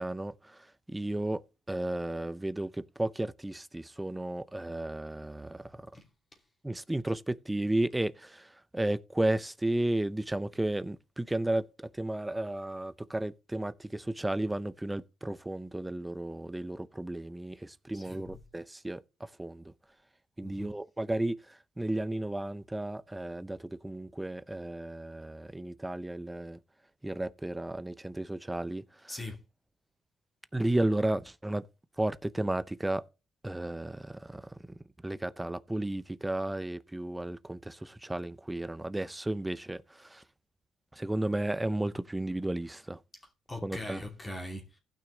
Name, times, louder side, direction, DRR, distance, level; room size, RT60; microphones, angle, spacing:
voice 1, 0.0-1.4 1.7-5.9 6.6-19.7 20.4-26.6 27.0-28.8 30.5-31.6 32.0-33.0 33.4-34.6 35.0-40.2 40.9-43.0 43.6-44.0, right 1 dB, 10° right, 0.6 m, -33 dB
voice 2, 17.9-18.2 20.4-20.8 29.1-29.4 43.1-43.2 43.5-44.8, left 1 dB, 20° left, 2.7 m, -41 dB
15.5 x 6.0 x 3.9 m
cardioid pair, 90°, 0 cm